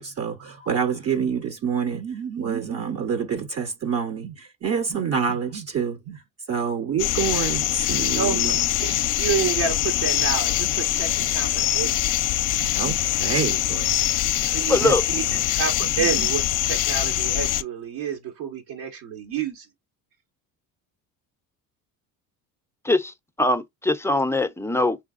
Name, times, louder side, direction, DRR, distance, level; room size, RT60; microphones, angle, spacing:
voice 1, 0.0-6.2 6.5-8.5 8.9-9.0 12.6-13.9 14.8-14.9 16.0-16.3, right 7 dB, 40° right, 0.9 m, -27 dB
sound 1, 7.0-17.6, left 14 dB, 55° left, 0.6 m, -23 dB
voice 2, 8.1-12.1 14.4-15.2 15.5-19.7, right 7 dB, 75° right, 1.7 m, -29 dB
voice 3, 14.4-15.0 22.8-25.0, left 2 dB, 5° left, 0.6 m, -22 dB
5.6 x 3.4 x 2.5 m
supercardioid pair, 95°, 38 cm